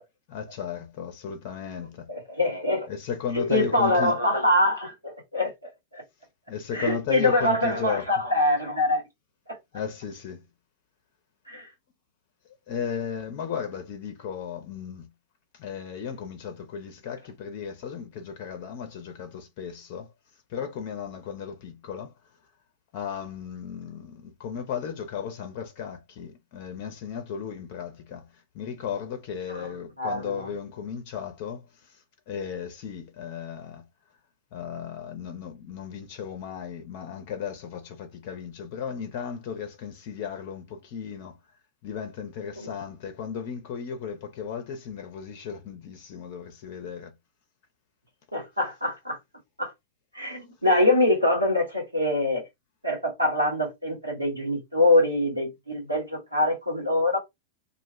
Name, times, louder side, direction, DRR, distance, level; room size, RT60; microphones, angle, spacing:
voice 1, 0.3-2.1 2.9-4.2 6.5-8.1 9.7-10.5 12.7-15.1 15.5-20.1 20.5-22.2 22.9-33.8 34.5-41.4 41.8-47.1, left 7 dB, 45° left, 0.5 m, -35 dB
voice 2, 2.1-2.9 3.3-6.0 6.7-9.0 11.5-11.7 29.5-29.7 30.0-30.4 42.6-42.7 48.3-49.2 49.6-49.7 50.1-52.4 52.8-57.2, left 1 dB, 85° right, 1.3 m, -24 dB
2.4 x 2.1 x 3.0 m
figure-of-eight pair, 90°, 0 cm